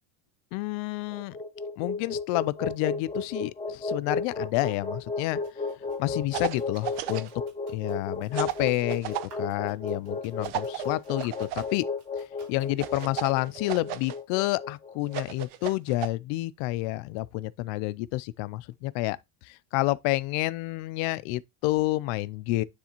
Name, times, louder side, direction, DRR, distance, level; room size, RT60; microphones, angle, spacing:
voice 1, 0.5-1.4 1.8-5.4 6.0-7.3 7.7-11.9 12.5-19.2 19.4-22.6, left 18 dB, 65° left, 0.5 m, -29 dB
sound 1, 1.1-15.2, left 3 dB, 15° left, 0.5 m, -34 dB
sound 2, 5.4-13.2, right 4 dB, 50° right, 3.4 m, -59 dB
sound 3, 6.3-7.3 8.3-9.3 10.4-11.7 12.8-14.2 15.1-16.1, right 15 dB, 80° right, 0.8 m, -34 dB
9.7 x 3.5 x 2.9 m
cardioid pair, 170°, 48 cm